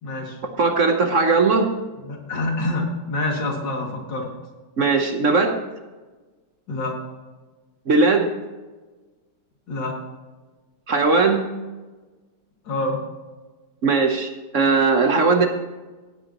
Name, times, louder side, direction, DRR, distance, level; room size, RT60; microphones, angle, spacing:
voice 1, 0.0-0.4 2.0-4.3 6.7-6.9 9.7-9.9 12.6-13.0, left 2 dB, 80° left, -1 dB, 3.2 m, -26 dB
voice 2, 0.6-1.7 4.8-5.5 7.9-8.3 10.9-11.5 13.8-15.5, right 4 dB, 50° right, 4 dB, 1.2 m, -18 dB
16.5 x 9.3 x 3.0 m, 1.3 s
omnidirectional pair, 2.0 m